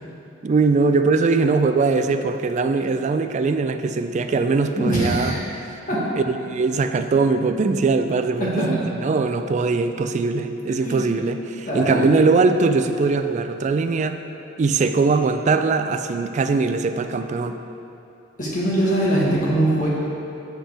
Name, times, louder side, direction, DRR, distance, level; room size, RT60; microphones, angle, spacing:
voice 1, 0.4-5.4 6.3-8.8 9.0-14.2 14.6-17.6, right 4 dB, 35° right, 8 dB, 0.3 m, -21 dB
voice 2, 4.8-5.4 5.9-6.1 8.4-8.7 10.8-11.1 11.7-12.1 18.4-19.9, right 1 dB, 45° left, -6 dB, 1.6 m, -22 dB
7.4 x 7.1 x 3.5 m, 2.8 s
head